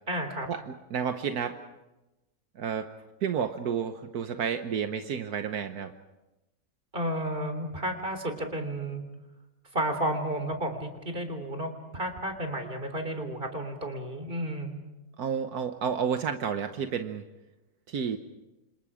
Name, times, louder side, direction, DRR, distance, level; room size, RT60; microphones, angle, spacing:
voice 1, 0.1-0.5 6.9-9.0 9.7-14.7, right 1 dB, 35° right, 6 dB, 3.8 m, -32 dB
voice 2, 0.9-1.6 2.6-2.9 3.2-5.9 15.2-17.2 17.9-18.2, right 7 dB, 80° right, 7 dB, 1.6 m, -30 dB
29.5 x 26.5 x 5.0 m, 1.0 s
omnidirectional pair, 1.6 m